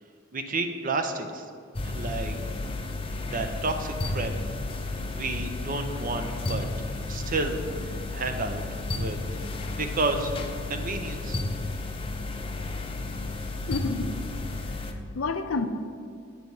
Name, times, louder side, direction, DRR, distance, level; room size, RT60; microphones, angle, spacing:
voice 1, 0.3-1.5 1.8-2.4 3.2-4.4 5.1-6.7 7.0-8.6 8.9-9.2 9.7-10.3 10.7-11.4, right 3 dB, 45° right, 6 dB, 0.6 m, -31 dB
sound 1, 1.7-14.9, left 2 dB, 25° left, 0.5 m, -32 dB
voice 2, 13.7-15.7, left 3 dB, 85° left, 8 dB, 0.6 m, -31 dB
8.1 x 4.6 x 5.3 m, 2.2 s
head